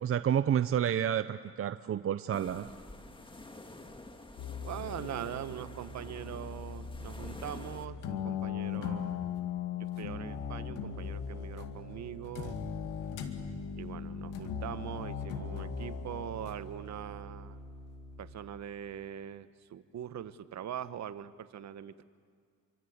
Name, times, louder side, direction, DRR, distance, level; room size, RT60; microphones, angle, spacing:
voice 1, 0.0-2.7, right 9 dB, 45° right, 12 dB, 0.7 m, -30 dB
sound 1, 2.3-7.9, left 2 dB, 15° left, 2.0 m, -48 dB
sound 2, 4.4-18.3, left 6 dB, 90° left, 2.2 m, -39 dB
voice 2, 4.6-9.2 9.8-12.6 13.8-17.6 18.2-22.0, right 10 dB, 65° right, 13 dB, 1.2 m, -42 dB
27.0 x 25.5 x 8.0 m, 2.1 s
cardioid pair, 90°, 30 cm